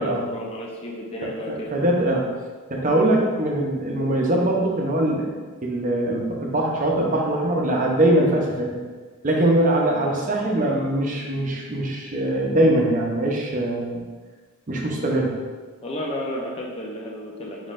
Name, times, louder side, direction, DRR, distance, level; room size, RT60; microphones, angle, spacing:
voice 1, 0.0-1.9 15.8-17.7, equal, 25° left, -2 dB, 0.5 m, -32 dB
voice 2, 1.5-2.3 2.7-8.8 9.2-14.0 14.7-15.4, right 1 dB, 35° right, -1 dB, 0.6 m, -22 dB
5.1 x 3.7 x 2.4 m, 1.4 s
head